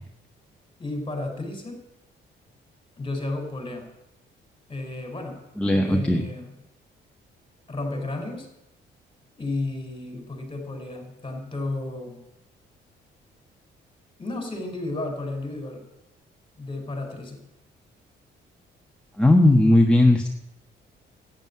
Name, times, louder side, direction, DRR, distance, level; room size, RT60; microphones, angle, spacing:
voice 1, 0.8-1.8 3.0-3.9 4.7-5.4 5.7-6.5 7.7-8.5 9.4-12.2 14.2-15.8 16.6-17.4, left 2 dB, 25° left, 4 dB, 4.3 m, -32 dB
voice 2, 5.6-6.2 19.2-20.3, left 1 dB, 5° left, 1 dB, 1.3 m, -17 dB
11.5 x 9.5 x 8.5 m, 0.89 s
cardioid pair, 90°, 20 cm